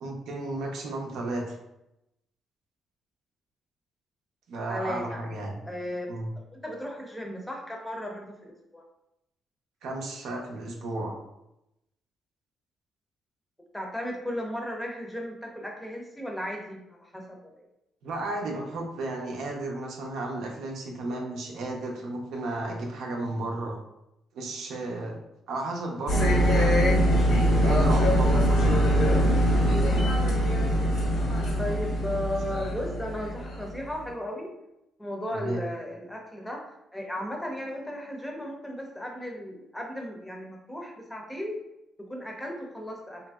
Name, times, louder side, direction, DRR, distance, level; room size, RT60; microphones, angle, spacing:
voice 1, 0.0-1.6 4.5-5.6 6.1-6.3 9.8-11.2 18.0-23.7 24.3-25.2 25.5-26.6 27.2-28.8 35.3-35.6, right 2 dB, 80° right, 0 dB, 0.6 m, -33 dB
voice 2, 4.7-5.2 5.6-6.1 6.5-8.8 13.7-17.7 30.7-30.8 31.6-34.5 35.0-36.6 36.9-41.6 42.0-43.2, left 1 dB, 10° left, 0 dB, 0.6 m, -35 dB
sound 1, 26.1-33.8, equal, 85° left, 1.3 m, -23 dB
2.9 x 2.6 x 2.3 m, 0.88 s
cardioid pair, 90°, 0 cm